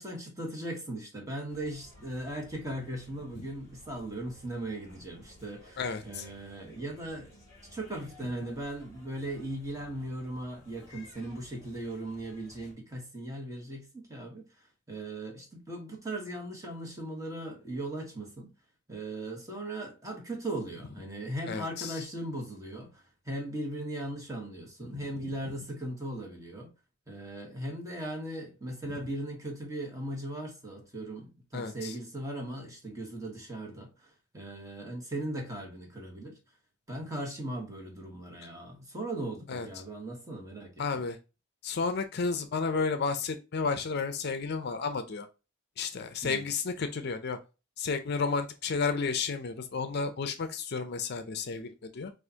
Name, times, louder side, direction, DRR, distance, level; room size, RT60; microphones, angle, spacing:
voice 1, 0.0-7.4 7.7-14.5 14.9-18.5 18.9-26.7 27.1-36.4 36.9-41.1 46.2-46.5, right 1 dB, 15° right, 1.2 m, -38 dB
sound 1, 1.5-12.7, left 1 dB, 15° left, 2.0 m, -56 dB
voice 2, 5.8-6.2 21.5-22.0 31.5-31.9 39.5-39.7 40.8-41.2 41.6-45.3 45.8-47.4 47.8-52.1, left 4 dB, 50° left, 0.5 m, -32 dB
6.4 x 2.5 x 2.8 m
head